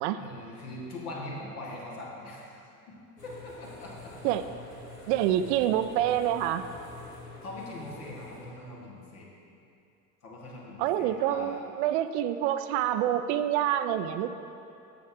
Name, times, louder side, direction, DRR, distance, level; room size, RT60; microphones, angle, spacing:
voice 1, 0.1-2.4 2.9-3.0 3.2-4.3 7.4-9.3 10.2-11.6, left 2 dB, 75° left, -4 dB, 1.9 m, -41 dB
sound 1, 3.2-8.5, left 3 dB, 90° left, 2.3 m, -47 dB
voice 2, 5.1-6.6 10.8-14.3, right 11 dB, 50° right, 10 dB, 0.4 m, -27 dB
8.7 x 7.2 x 4.6 m, 2.6 s
figure-of-eight pair, 65°, 46 cm